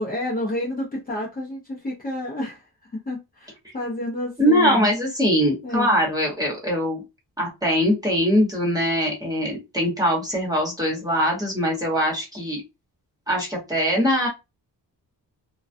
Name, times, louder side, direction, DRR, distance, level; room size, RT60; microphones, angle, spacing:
voice 1, 0.0-4.9 5.6-5.9, left 1 dB, 20° left, 0.6 m, -30 dB
voice 2, 4.4-7.0 7.4-12.6 13.3-14.3, equal, 10° right, 1.0 m, -22 dB
2.3 x 2.2 x 2.5 m
wide cardioid pair, 135°, 42 cm